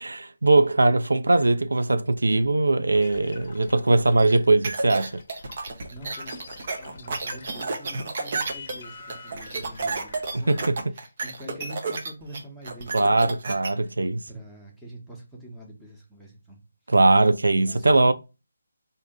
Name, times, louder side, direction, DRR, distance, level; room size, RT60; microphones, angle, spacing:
voice 1, 0.0-5.1 10.5-10.6 12.9-14.2 16.9-18.1, right 2 dB, 90° right, 0.3 m, -20 dB
sound 1, 2.9-8.0 8.3-10.7, left 4 dB, 40° left, 0.6 m, -46 dB
sound 2, 4.6-13.7, right 3 dB, 45° right, 0.7 m, -31 dB
voice 2, 5.9-6.3 6.8-13.4 13.7-14.0 14.3-16.6 17.6-18.1, right 1 dB, ahead, 0.9 m, -44 dB
3.6 x 2.7 x 3.6 m
figure-of-eight pair, 160°, 0 cm